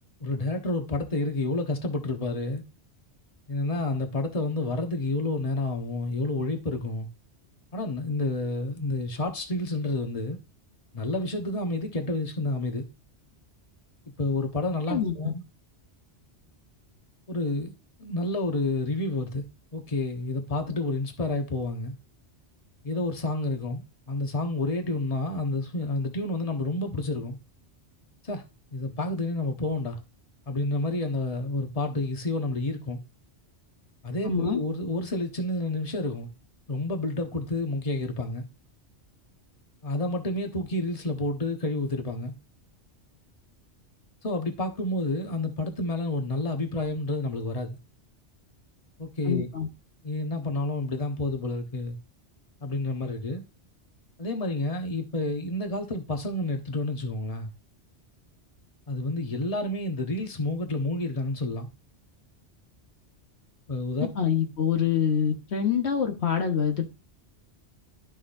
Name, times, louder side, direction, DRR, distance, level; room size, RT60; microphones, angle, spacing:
voice 1, 0.2-2.6 3.5-7.1 7.7-10.4 10.9-12.8 14.2-15.4 17.3-17.7 18.0-19.4 19.7-21.9 22.8-27.4 28.2-28.4 28.7-30.0 30.5-33.0 34.0-36.3 36.7-38.5 39.8-42.3 44.2-47.8 49.0-49.5 50.0-52.0 52.6-53.4 54.2-57.5 58.9-61.7 63.7-64.1, left 2 dB, 35° left, 1.3 m, -29 dB
voice 2, 14.9-15.3 34.2-34.6 49.3-49.7 64.1-66.8, left 7 dB, 70° left, 1.5 m, -26 dB
11.5 x 6.4 x 2.6 m
omnidirectional pair, 1.2 m